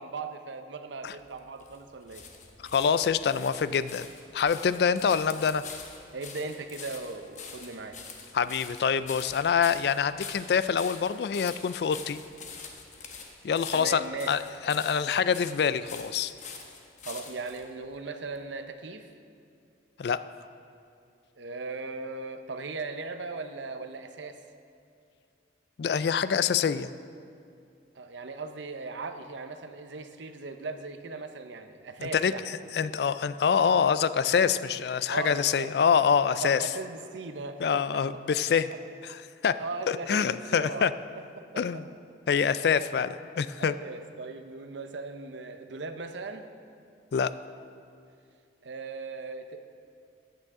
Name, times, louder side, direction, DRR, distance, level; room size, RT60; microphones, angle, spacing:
voice 1, 0.0-2.3 6.1-8.0 13.7-14.3 17.0-19.1 21.4-24.4 27.9-32.4 35.1-35.7 36.4-37.8 38.1-38.2 38.5-38.6 39.6-40.9 41.4-41.8 42.4-42.6 43.6-46.5 48.6-49.6, right 3 dB, 80° right, 8 dB, 0.7 m, -38 dB
sound 1, 1.1-17.6 18.3-18.4, left 5 dB, 40° left, 1.0 m, -45 dB
voice 2, 2.7-4.1 4.3-5.6 8.3-12.2 13.4-14.4 14.7-16.3 20.0-20.2 25.8-26.9 32.0-32.3 32.7-36.6 37.6-38.7 39.0-39.2 39.4-39.6 39.9-40.9 41.6-41.8 42.3-43.8 47.1-47.3, left 6 dB, 60° left, 14 dB, 0.3 m, -25 dB
14.5 x 9.1 x 3.7 m, 2.5 s
head